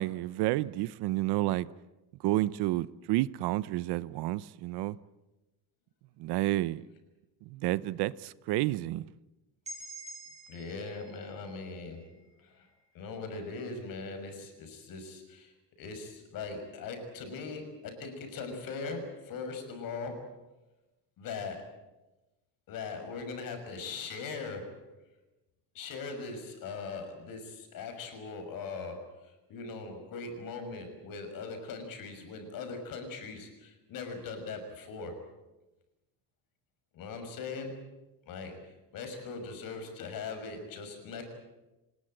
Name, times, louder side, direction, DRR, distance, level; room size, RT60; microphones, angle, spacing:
voice 1, 0.0-1.7 2.2-5.0 6.2-6.9 7.5-9.0, right 16 dB, 65° right, 0.8 m, -30 dB
sound 1, 9.6-13.5, right 2 dB, 15° right, 7.1 m, -49 dB
voice 2, 10.5-12.7 12.9-20.4 21.2-21.9 22.7-24.9 25.7-35.2 36.9-37.7 38.3-41.2, left 4 dB, 50° left, 6.1 m, -40 dB
25.5 x 20.5 x 8.9 m
cardioid pair, 170°, 42 cm